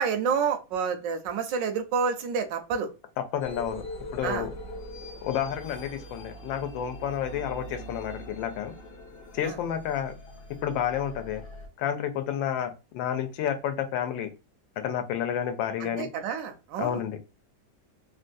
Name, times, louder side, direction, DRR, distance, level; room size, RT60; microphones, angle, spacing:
voice 1, 0.0-2.9 4.2-4.5 9.4-9.6 15.8-17.0, right 6 dB, 80° right, 7 dB, 1.3 m, -29 dB
voice 2, 3.2-3.8 4.1-4.5 5.2-8.7 9.3-10.2 10.6-11.4 11.8-14.3 14.8-16.1 16.8-17.2, left 9 dB, 85° left, 9 dB, 1.3 m, -30 dB
sound 1, 3.4-11.7, equal, 55° left, 0.6 m, -42 dB
3.5 x 2.2 x 2.6 m, 0.29 s
omnidirectional pair, 2.0 m